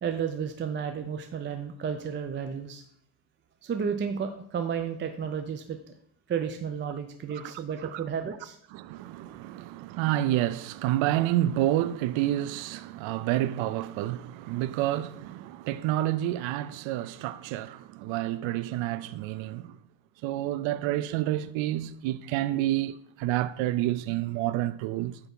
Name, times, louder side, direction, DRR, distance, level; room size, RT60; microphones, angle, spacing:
voice 1, 0.0-2.8 3.6-5.9 6.3-8.6 9.2-9.4, right 7 dB, 25° right, 0.4 m, -32 dB
voice 2, 8.7-19.8 20.2-25.2, right 14 dB, 75° right, 0.5 m, -29 dB
8.2 x 3.5 x 5.3 m
cardioid pair, 130°, 47 cm